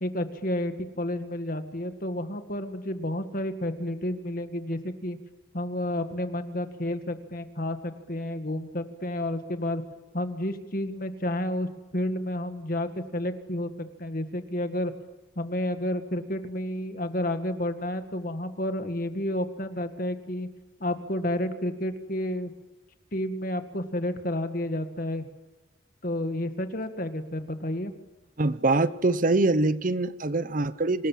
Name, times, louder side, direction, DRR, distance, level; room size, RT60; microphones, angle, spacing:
voice 1, 0.0-5.2 5.5-9.8 10.1-14.9 15.4-20.5 20.8-22.5 23.1-25.3 26.0-27.9, left 1 dB, 45° left, 8 dB, 2.0 m, -31 dB
voice 2, 28.4-31.1, right 2 dB, 45° right, 15 dB, 0.8 m, -24 dB
27.0 x 20.0 x 7.5 m, 1.1 s
head